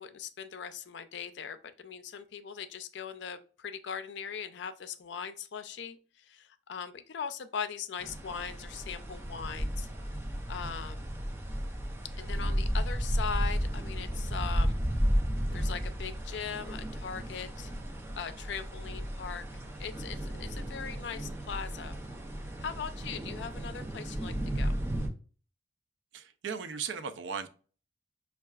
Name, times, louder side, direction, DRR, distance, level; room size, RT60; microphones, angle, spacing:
voice 1, 0.0-9.9 10.5-11.1 12.2-14.8 15.5-17.7 18.2-19.4 19.8-22.0 22.6-24.8, left 6 dB, 75° left, 10 dB, 0.4 m, -40 dB
sound 1, 8.0-25.1, equal, 15° right, 0.4 m, -33 dB
voice 2, 26.1-27.5, right 6 dB, 90° right, 9 dB, 0.4 m, -37 dB
5.5 x 2.3 x 2.3 m, 0.38 s
head